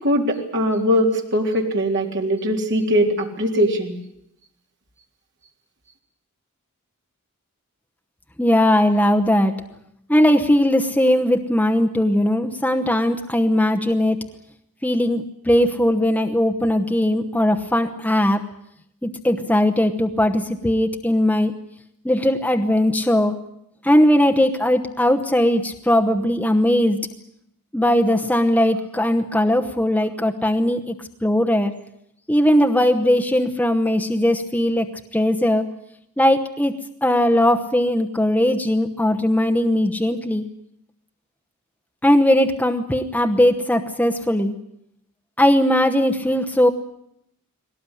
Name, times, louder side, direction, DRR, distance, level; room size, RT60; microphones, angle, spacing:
voice 1, 0.0-4.0, equal, 50° right, 1 dB, 3.7 m, -21 dB
voice 2, 8.4-9.5 10.1-14.2 14.8-18.4 19.0-21.5 22.0-23.4 23.8-27.0 27.7-30.9 31.2-31.7 32.3-35.6 36.2-36.7 37.0-40.5 42.0-44.5 45.4-46.7, left 1 dB, 5° left, 3 dB, 1.0 m, -19 dB
20.5 x 18.5 x 9.9 m, 0.77 s
head